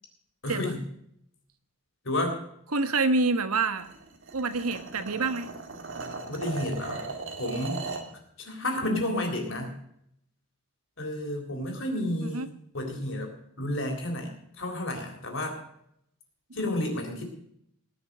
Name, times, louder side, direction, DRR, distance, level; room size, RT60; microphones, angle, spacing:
voice 1, 0.4-0.8 2.0-2.3 6.3-7.0 7.4-7.8 8.4-9.8 11.0-12.5 12.7-13.3 13.6-15.6 16.5-17.2, left 1 dB, 60° left, 3 dB, 3.8 m, -31 dB
voice 2, 2.7-3.9 4.3-5.5 12.2-12.5 16.6-16.7, right 3 dB, 85° right, 10 dB, 1.4 m, -27 dB
sound 1, 3.8-8.1, right 3 dB, 55° right, 2.3 m, -38 dB
19.5 x 6.8 x 6.3 m, 0.73 s
head